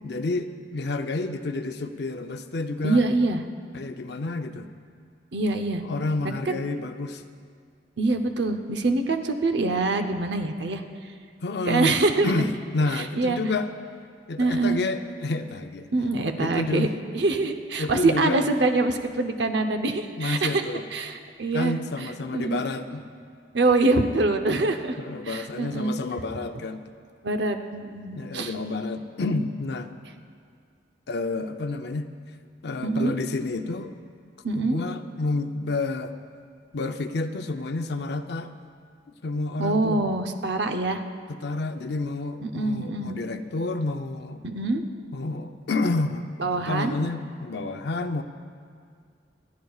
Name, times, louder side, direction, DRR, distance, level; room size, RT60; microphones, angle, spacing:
voice 1, 0.0-3.0 3.7-4.7 5.8-7.2 11.4-12.0 12.2-13.7 14.3-15.9 16.4-16.9 17.8-18.4 20.2-20.8 21.5-23.1 24.6-24.7 25.0-26.8 28.1-29.9 31.1-32.1 32.6-33.9 34.6-36.1 36.7-38.5 39.2-40.0 41.3-44.4 45.1-48.2, left 3 dB, 60° left, 8 dB, 0.6 m, -29 dB
voice 2, 2.8-3.4 5.3-5.8 6.2-6.6 8.0-10.8 11.7-12.3 12.9-13.4 14.4-14.8 15.9-16.9 17.1-20.6 20.9-22.6 23.5-25.0 25.2-25.9 27.2-28.5 32.8-33.1 34.4-34.8 39.6-41.0 42.4-43.2 44.4-44.8 46.4-46.9, right 3 dB, 65° right, 6 dB, 0.8 m, -25 dB
27.5 x 10.5 x 2.4 m, 2.1 s
head